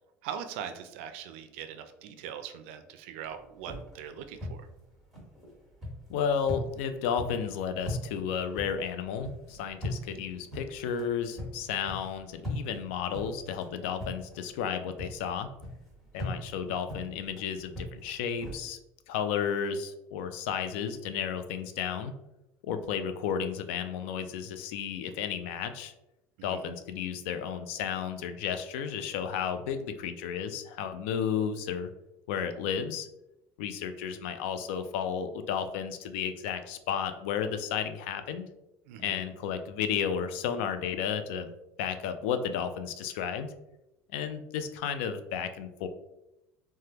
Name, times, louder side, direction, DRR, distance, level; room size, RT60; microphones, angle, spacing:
voice 1, 0.2-4.6 26.4-26.7 38.9-39.2, right 8 dB, 90° right, 8 dB, 0.4 m, -41 dB
sound 1, 3.2-14.7 15.0-18.5, left 1 dB, ahead, 1.3 m, -41 dB
voice 2, 6.1-15.5 16.1-18.8 19.1-22.1 22.6-25.9 26.4-31.9 32.3-33.1 33.6-38.5 39.0-41.5 41.8-43.5 44.1-45.9, left 7 dB, 90° left, 9 dB, 0.4 m, -33 dB
3.3 x 2.2 x 2.8 m, 0.89 s
cardioid pair, 140°, 7 cm